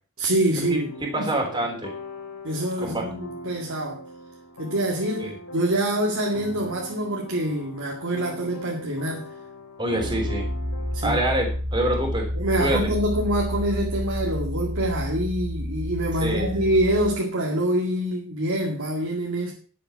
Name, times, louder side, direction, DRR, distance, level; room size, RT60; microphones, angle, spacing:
voice 1, 0.2-1.3 2.4-4.0 4.6-9.3 10.9-11.2 12.3-19.5, right 1 dB, 65° right, -1 dB, 2.1 m, -25 dB
sound 1, 0.6-11.6, equal, 85° left, 3.4 m, -40 dB
voice 2, 1.1-1.9 2.8-3.0 5.2-5.4 9.8-10.5 11.0-12.3 12.6-12.8 16.2-16.7, right 1 dB, 20° right, 1 dB, 3.5 m, -26 dB
sound 2, 10.0-17.1, equal, 5° right, 3.1 m, -30 dB
11.5 x 7.7 x 5.8 m, 0.40 s
head